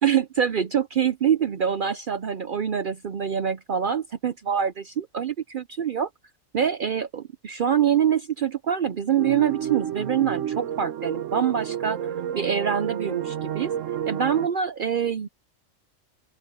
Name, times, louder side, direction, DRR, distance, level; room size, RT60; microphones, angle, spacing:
voice 1, 0.0-6.1 6.5-13.7 14.1-15.3, right 8 dB, 55° right, 0.6 m, -25 dB
sound 1, 9.2-14.5, right 10 dB, 75° right, 1.2 m, -30 dB
open air
omnidirectional pair, 1.3 m